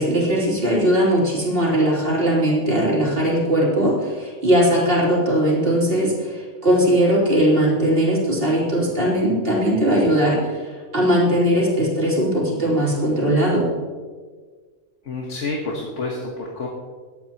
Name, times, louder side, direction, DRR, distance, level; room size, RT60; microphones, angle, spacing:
voice 1, 0.0-10.6 10.9-13.7, equal, 50° right, -5 dB, 3.4 m, -19 dB
voice 2, 15.0-16.7, left 3 dB, 70° left, -2 dB, 1.6 m, -28 dB
20.5 x 8.8 x 2.9 m, 1.5 s
omnidirectional pair, 1.3 m